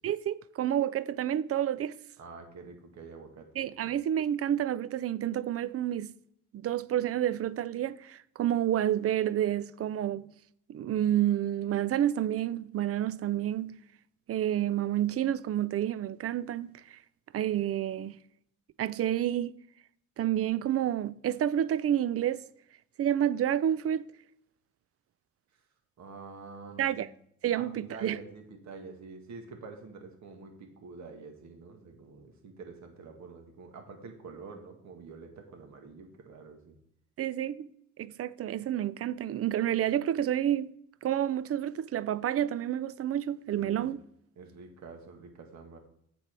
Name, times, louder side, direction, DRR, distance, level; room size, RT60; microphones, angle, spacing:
voice 1, 0.0-2.0 3.6-6.1 6.5-10.3 10.7-13.8 14.3-17.0 17.3-18.2 18.8-19.5 20.2-22.4 23.0-24.1 26.8-27.1 27.4-28.2 37.2-37.7 38.0-40.7 41.0-44.0, right 11 dB, 50° right, 0.5 m, -29 dB
voice 2, 2.2-3.5 3.8-3.9 26.0-27.1 27.5-36.8 43.6-43.9 44.4-45.8, right 4 dB, 65° right, 2.0 m, -47 dB
7.9 x 7.0 x 4.6 m
cardioid pair, 90°, 30 cm